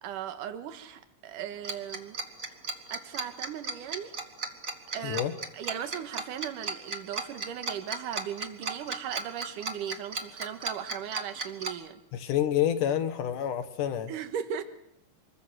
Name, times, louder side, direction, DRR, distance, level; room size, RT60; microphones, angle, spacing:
voice 1, 0.0-2.2 2.9-4.1 4.9-5.2 5.5-12.0 14.1-14.6, right 9 dB, 80° right, 8 dB, 2.9 m, -37 dB
Tick-tock, 1.6-11.7, right 3 dB, 35° right, 1.6 m, -35 dB
voice 2, 12.1-14.1, left 10 dB, 75° left, 9 dB, 3.0 m, -28 dB
26.5 x 22.0 x 6.3 m, 0.81 s
omnidirectional pair, 3.8 m